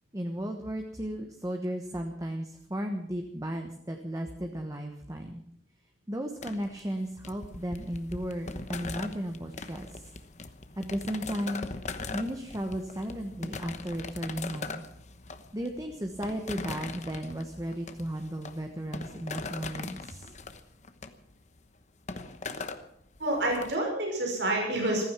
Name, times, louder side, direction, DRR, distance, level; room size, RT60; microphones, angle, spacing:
voice 1, 0.1-5.4 6.1-10.0 10.8-11.7 12.1-14.8 15.5-20.3, equal, 20° right, 4 dB, 1.2 m, -35 dB
sound 1, 6.4-23.7, left 3 dB, 40° left, 1.0 m, -41 dB
voice 2, 23.2-25.1, right 1 dB, 85° right, 1 dB, 6.0 m, -28 dB
15.0 x 15.0 x 6.1 m, 0.70 s
head